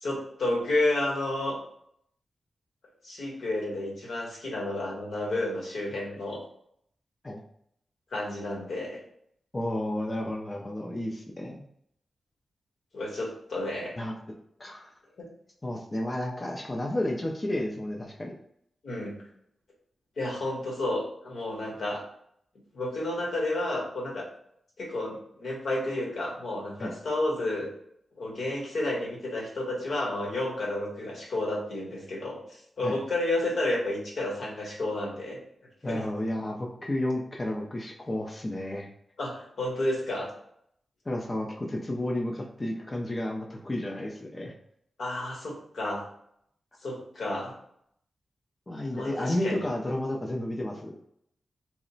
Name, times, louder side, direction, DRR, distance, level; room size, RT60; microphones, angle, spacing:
voice 1, 0.0-1.6 3.0-6.4 8.1-9.0 12.9-13.9 15.2-15.3 18.8-19.2 20.2-22.0 22.7-24.3 24.8-27.7 28.1-35.4 35.9-36.1 39.2-40.3 45.0-46.1 46.8-47.5 48.9-49.6, left 1 dB, 75° left, -2 dB, 1.0 m, -31 dB
voice 2, 9.5-11.6 14.0-14.1 14.6-14.9 15.6-18.3 26.8-26.9 32.8-33.0 35.8-38.9 41.1-44.5 48.7-50.9, left 1 dB, 20° left, -1 dB, 0.4 m, -32 dB
2.9 x 2.0 x 3.9 m, 0.69 s
wide cardioid pair, 155°, 0 cm